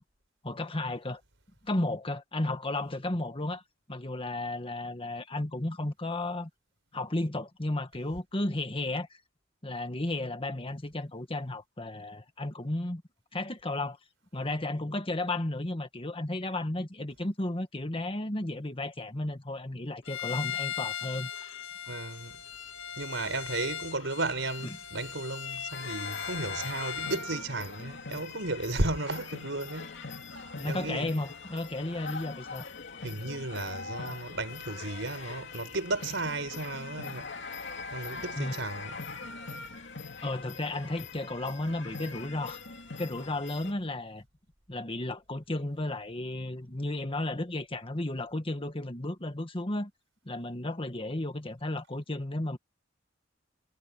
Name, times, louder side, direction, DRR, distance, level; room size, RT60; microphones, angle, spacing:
voice 1, 0.4-1.2 1.6-3.6 3.9-6.5 6.9-9.1 9.6-13.0 13.3-14.0 14.3-21.6 30.6-32.6 38.3-38.6 40.2-42.6 43.0-44.2 44.7-49.9 50.2-52.6, left 2 dB, 30° left, 1.6 m, -33 dB
Bowed string instrument, 20.0-27.3, left 9 dB, 80° left, 2.0 m, -38 dB
voice 2, 21.9-22.4 23.0-31.1 33.0-37.3 37.9-39.0, right 2 dB, 70° right, 5.5 m, -34 dB
sound 1, 25.7-43.7, left 4 dB, 65° left, 2.7 m, -42 dB
head